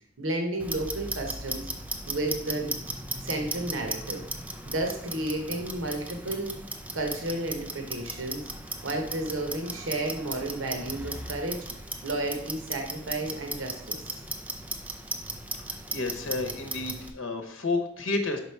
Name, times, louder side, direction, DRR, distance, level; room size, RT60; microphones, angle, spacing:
voice 1, 0.2-1.7 2.1-2.7 3.2-4.2 4.7-6.5 6.9-8.5 8.8-11.7 12.0-14.0, right 2 dB, 85° right, 3 dB, 1.1 m, -32 dB
Clock, 0.6-17.1, right 2 dB, 10° right, 0.5 m, -37 dB
voice 2, 15.7-18.4, left 3 dB, 85° left, 5 dB, 0.9 m, -31 dB
5.5 x 5.0 x 4.5 m, 0.69 s
head